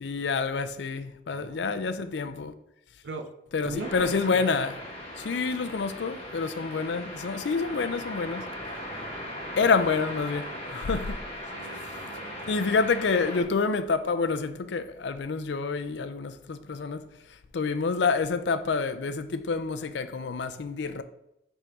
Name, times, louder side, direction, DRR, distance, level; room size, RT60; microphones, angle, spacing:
voice 1, 0.0-2.5 3.5-4.8 5.2-8.5 9.6-11.2 12.5-21.0, left 4 dB, 80° left, 0.5 m, -28 dB
voice 2, 1.3-2.4 3.0-3.3 3.6-4.5 8.9-9.6 11.5-12.6, right 3 dB, 85° right, 0.6 m, -41 dB
sound 1, 3.8-13.4, equal, 35° left, 1.3 m, -39 dB
5.4 x 3.7 x 5.2 m
head